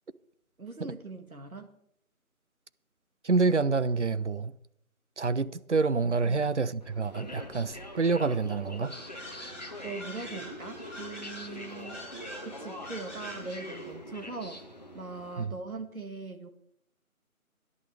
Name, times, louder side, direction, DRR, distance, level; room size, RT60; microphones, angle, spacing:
voice 1, 0.6-1.8 6.2-6.4 9.8-12.1 12.4-14.6 14.9-16.5, right 3 dB, 75° right, 2.1 m, -41 dB
voice 2, 3.2-4.5 5.2-9.0 15.4-15.5, right 4 dB, 55° right, 0.7 m, -27 dB
sound 1, 6.8-15.5, left 1 dB, 30° left, 0.9 m, -43 dB
sound 2, 8.8-14.0, equal, 10° right, 6.0 m, -46 dB
19.0 x 11.0 x 3.4 m
figure-of-eight pair, 170°, 43 cm